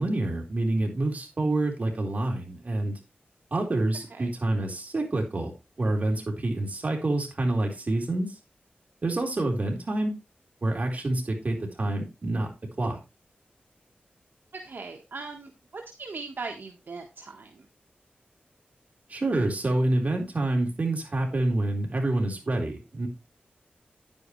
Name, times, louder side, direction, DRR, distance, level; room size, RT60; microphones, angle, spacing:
voice 1, 0.0-3.0 3.5-5.5 5.8-8.3 9.0-10.1 10.6-12.5 12.8-13.0 19.1-23.1, right 2 dB, 45° right, 1 dB, 3.9 m, -27 dB
voice 2, 14.6-17.7, right 4 dB, 70° right, 2 dB, 1.5 m, -39 dB
10.0 x 9.7 x 3.2 m, 0.26 s
wide cardioid pair, 100°, 3 cm